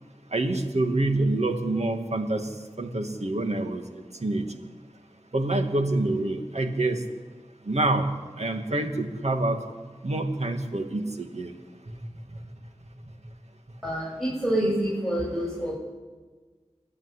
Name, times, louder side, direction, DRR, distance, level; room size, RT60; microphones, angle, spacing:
voice 1, 0.3-2.5 2.8-3.8 4.2-4.4 5.3-7.0 7.7-8.1 8.4-9.6 10.0-11.5, right 2 dB, 70° right, 4 dB, 2.4 m, -26 dB
voice 2, 13.8-15.7, right 1 dB, ahead, -5 dB, 7.7 m, -27 dB
28.5 x 11.0 x 9.9 m, 1.4 s
wide cardioid pair, 50°, 12 cm